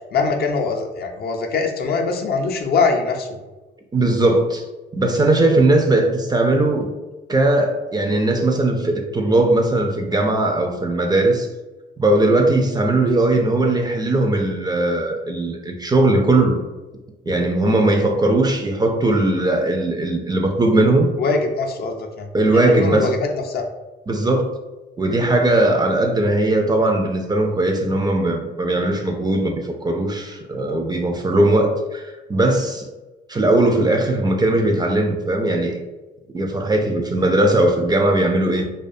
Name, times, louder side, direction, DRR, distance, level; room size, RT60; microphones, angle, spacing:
voice 1, 0.1-3.4 21.2-23.7, left 4 dB, 50° left, 3 dB, 0.4 m, -22 dB
voice 2, 3.9-4.6 4.9-6.9 7.3-11.5 12.0-16.6 17.3-21.1 22.3-23.1 24.1-24.5 25.0-32.9 33.3-35.8 36.3-38.6, right 2 dB, 20° right, 3 dB, 0.3 m, -19 dB
2.3 x 2.2 x 2.6 m, 1.1 s
cardioid pair, 90°, 20 cm